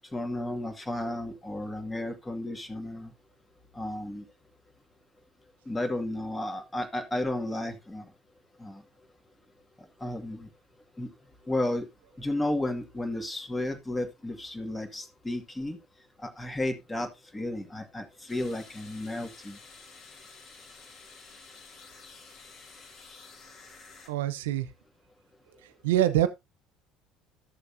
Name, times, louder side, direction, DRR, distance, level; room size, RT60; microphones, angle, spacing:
voice 1, 0.1-3.1 3.7-4.2 5.7-8.1 8.6-8.8 10.0-10.5 11.0-11.1 11.5-11.9 12.2-15.8 16.2-19.6, left 1 dB, 15° left, 2.2 m, -33 dB
sound 1, 18.3-24.1, left 4 dB, 50° left, 3.4 m, -51 dB
voice 2, 24.1-24.7 25.6-26.3, right 12 dB, 75° right, 0.8 m, -25 dB
13.5 x 6.7 x 2.7 m
hypercardioid pair, 65°, 0 cm